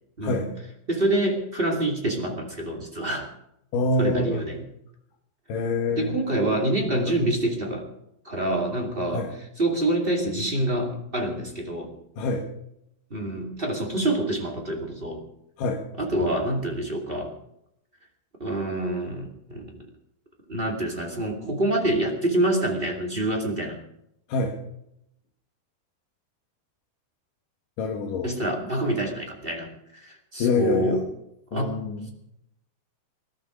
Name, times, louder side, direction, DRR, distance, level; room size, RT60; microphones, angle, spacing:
voice 1, 0.9-3.3 4.0-4.6 5.9-7.8 8.2-11.9 13.1-15.2 16.0-17.3 18.4-19.7 20.5-23.8 28.2-31.0 31.5-31.7, right 1 dB, 20° right, 1 dB, 1.4 m, -26 dB
voice 2, 3.7-4.5 5.5-6.2 7.1-7.2 9.1-9.3 12.2-12.4 15.6-15.8 24.3-24.6 27.8-28.3 30.4-31.0 31.5-32.1, left 3 dB, 65° left, 2 dB, 2.5 m, -26 dB
20.0 x 13.0 x 5.1 m, 0.78 s
omnidirectional pair, 5.0 m